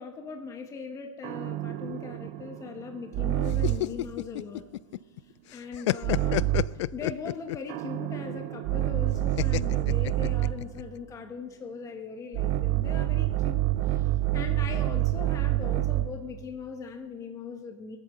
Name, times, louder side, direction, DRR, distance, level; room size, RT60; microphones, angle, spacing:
voice 1, 0.0-4.6 5.5-6.5 6.9-18.0, left 5 dB, 20° left, 4 dB, 1.3 m, -40 dB
sound 1, 1.2-4.0 6.0-6.8 7.7-10.7 12.3-16.2, right 15 dB, 40° right, 0.7 m, -27 dB
sound 2, 3.5-5.2 5.5-7.7 9.4-10.8, left 16 dB, 65° left, 0.4 m, -30 dB
19.5 x 8.6 x 6.8 m, 1.2 s
hypercardioid pair, 135°, 16 cm